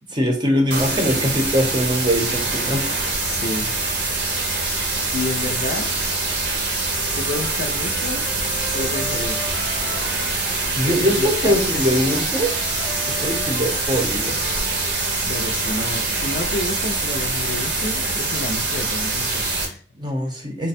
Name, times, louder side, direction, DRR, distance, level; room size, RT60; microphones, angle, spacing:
voice 1, 0.1-2.9 10.8-12.5 12.9-14.4 19.9-20.7, equal, 25° right, 3 dB, 0.7 m, -22 dB
sound 1, 0.7-19.7, right 3 dB, 75° right, 1.0 m, -24 dB
voice 2, 0.9-1.4 3.3-3.7 5.1-5.9 7.2-8.3 8.7-9.4 10.8-11.9 15.2-19.8, left 2 dB, 60° left, 7 dB, 0.4 m, -30 dB
Wind instrument woodwind instrument, 6.9-10.7 11.6-15.2, equal, 5° left, 0.5 m, -38 dB
3.4 x 2.1 x 4.1 m, 0.40 s
head